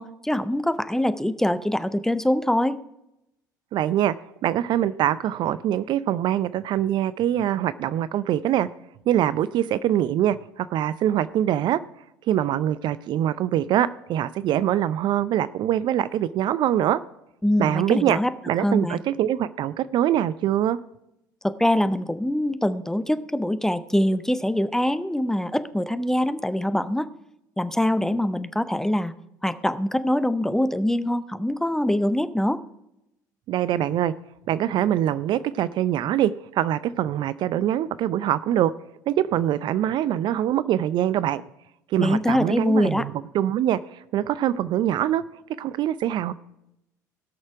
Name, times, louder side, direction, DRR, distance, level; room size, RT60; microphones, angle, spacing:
voice 1, 0.0-2.8 17.4-18.3 18.6-19.0 21.4-27.1 27.6-29.1 29.4-32.6 42.0-43.1, left 1 dB, 5° left, 13 dB, 0.7 m, -24 dB
voice 2, 3.7-4.1 4.4-8.7 9.1-11.8 12.3-17.0 17.6-18.2 18.5-20.8 33.5-34.1 34.5-38.7 39.1-41.4 41.9-45.2 45.6-46.3, right 11 dB, 50° right, 16 dB, 0.4 m, -23 dB
17.5 x 6.5 x 4.7 m, 0.84 s
hypercardioid pair, 60°, 10 cm